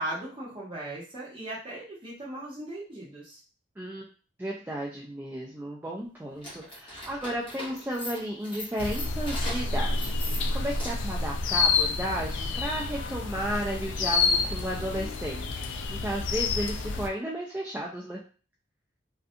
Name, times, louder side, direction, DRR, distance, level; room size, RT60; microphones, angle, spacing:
voice 1, 0.0-3.4, right 1 dB, 25° right, -5 dB, 0.9 m, -37 dB
voice 2, 4.4-18.2, equal, 10° right, -3 dB, 0.3 m, -34 dB
sound 1, 6.3-11.2, left 1 dB, 25° left, 0.9 m, -40 dB
sound 2, 8.8-17.1, left 4 dB, 75° left, 0.3 m, -29 dB
2.6 x 2.3 x 2.4 m, 0.37 s
head